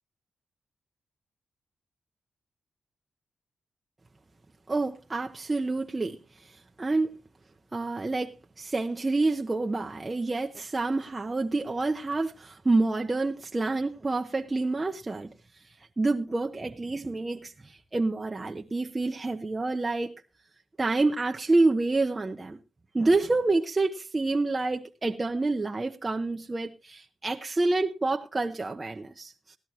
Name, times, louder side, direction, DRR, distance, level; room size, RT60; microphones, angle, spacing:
voice 1, 4.7-7.2 7.7-15.3 16.0-20.1 20.8-22.6 22.9-29.6, right 3 dB, 25° right, 0.7 m, -28 dB
17.0 x 12.0 x 2.8 m
cardioid pair, 95°, 0 cm